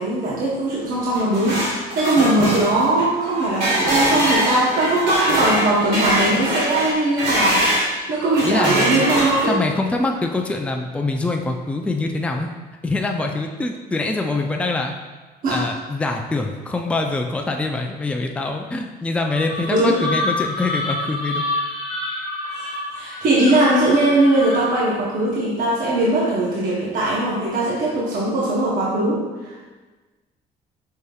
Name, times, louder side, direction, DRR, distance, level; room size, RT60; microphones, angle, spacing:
voice 1, 0.0-1.6 1.9-9.6 15.4-15.6 19.7-20.0 22.5-29.5, right 2 dB, 55° right, -5 dB, 0.9 m, -20 dB
sound 1, 0.9-7.9 8.3-9.7, right 1 dB, 80° right, 1.4 m, -22 dB
voice 2, 8.4-9.0 9.5-12.5 12.8-14.9 15.5-21.5, left 2 dB, 5° left, 3 dB, 0.3 m, -24 dB
sound 2, 19.2-24.9, left 2 dB, 35° left, 0.8 m, -28 dB
5.4 x 3.2 x 2.3 m, 1.3 s
cardioid pair, 110°, 17 cm